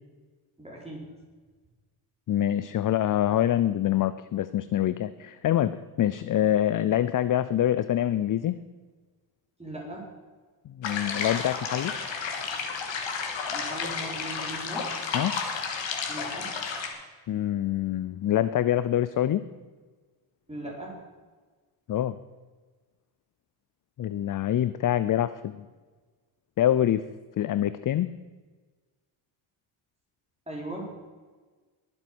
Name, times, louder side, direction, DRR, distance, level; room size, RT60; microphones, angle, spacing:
voice 1, 0.6-1.1 9.6-10.1 13.4-15.0 16.1-16.6 20.5-21.0 30.5-30.9, right 1 dB, 15° right, -3 dB, 4.0 m, -38 dB
voice 2, 2.3-8.6 10.7-11.9 15.1-15.4 17.3-19.4 21.9-22.2 24.0-25.6 26.6-27.0 27.4-28.2, left 11 dB, 45° left, 15 dB, 0.5 m, -25 dB
sound 1, 10.8-16.9, left 5 dB, 65° left, 2.7 m, -32 dB
21.5 x 7.6 x 6.1 m, 1.4 s
cardioid pair, 120°, 48 cm